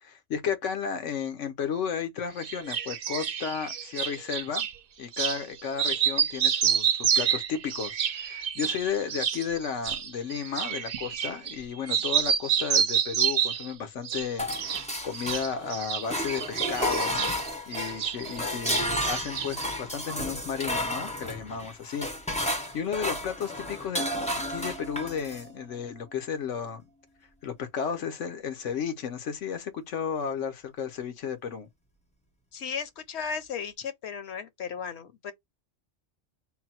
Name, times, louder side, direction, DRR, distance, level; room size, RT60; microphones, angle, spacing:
voice 1, 0.0-4.7 5.0-17.3 17.7-26.9 27.4-31.7, left 7 dB, 90° left, 1.2 m, -33 dB
sound 1, 2.4-4.7 5.1-5.4 5.7-11.6 11.9-13.7 14.0-14.9 15.1-18.4 18.6-19.7, right 8 dB, 55° right, 0.7 m, -28 dB
sound 2, 14.4-15.7 16.0-25.5, left 1 dB, 10° left, 0.4 m, -32 dB
voice 2, 32.5-35.3, left 6 dB, 65° left, 0.9 m, -35 dB
3.8 x 2.2 x 4.1 m
omnidirectional pair, 1.2 m